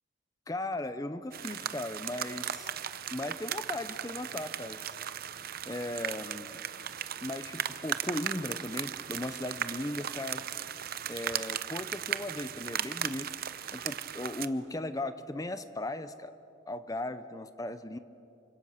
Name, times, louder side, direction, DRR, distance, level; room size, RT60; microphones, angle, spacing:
voice 1, 0.5-2.7 3.1-4.8 5.6-6.6 7.2-10.4 11.1-13.3 13.7-16.3 16.7-18.0, left 1 dB, 15° left, 11 dB, 0.7 m, -37 dB
sound 1, 1.3-14.5, right 9 dB, 50° right, 0.8 m, -37 dB
28.0 x 26.0 x 6.7 m, 2.8 s
head